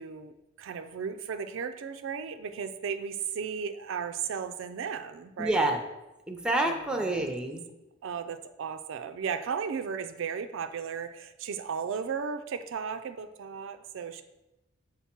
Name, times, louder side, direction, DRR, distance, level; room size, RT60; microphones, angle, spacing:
voice 1, 0.0-5.7 6.6-7.2 8.0-14.2, right 6 dB, 65° right, 8 dB, 0.4 m, -35 dB
voice 2, 5.4-5.8 6.3-7.6, right 2 dB, 5° right, 4 dB, 0.6 m, -28 dB
7.1 x 3.8 x 4.4 m, 0.98 s
head